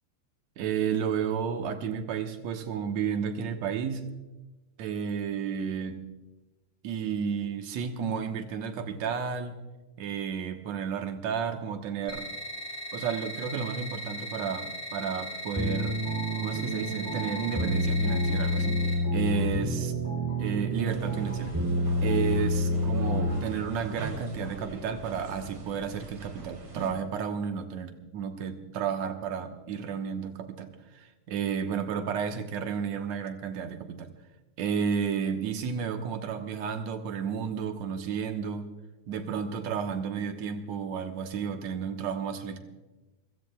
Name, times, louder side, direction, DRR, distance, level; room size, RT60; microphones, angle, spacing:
voice 1, 0.6-4.1 4.8-6.0 6.8-9.6 10.0-12.3 12.9-16.0 16.4-18.9 19.1-19.9 20.4-21.6 22.0-34.1 34.6-38.7 39.1-42.6, right 7 dB, 70° right, 5 dB, 2.3 m, -32 dB
sound 1, 12.1-18.9, equal, 20° left, 4.5 m, -38 dB
sound 2, 15.5-23.6, equal, 5° right, 2.4 m, -28 dB
sound 3, 20.9-26.9, right 2 dB, 50° right, 4.1 m, -42 dB
28.5 x 16.0 x 2.3 m, 1.1 s
omnidirectional pair, 3.5 m